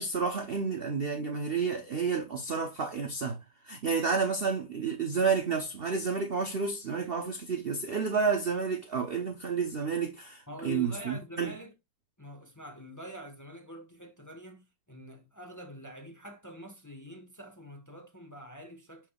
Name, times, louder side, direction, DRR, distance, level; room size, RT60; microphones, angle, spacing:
voice 1, 0.0-3.4 3.6-11.5, right 5 dB, 50° right, 0.7 m, -30 dB
voice 2, 10.5-11.7 12.2-19.1, right 1 dB, 10° left, 1.0 m, -45 dB
6.8 x 5.9 x 2.3 m
omnidirectional pair, 2.1 m